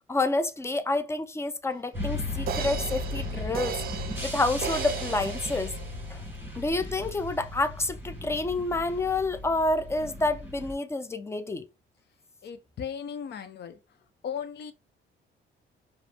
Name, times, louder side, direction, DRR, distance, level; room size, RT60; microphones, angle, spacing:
voice 1, 0.1-3.8 4.2-5.7 6.1-6.2 6.6-11.7, left 2 dB, 15° left, 0.5 m, -28 dB
sound 1, 1.7-1.8 2.5-6.2 6.7-6.8, right 9 dB, 50° right, 0.4 m, -36 dB
sound 2, 1.9-10.7, left 2 dB, 10° right, 2.0 m, -36 dB
voice 2, 12.4-14.0 14.2-14.7, left 7 dB, 60° left, 0.6 m, -37 dB
4.9 x 2.0 x 3.4 m
cardioid pair, 90°, 20 cm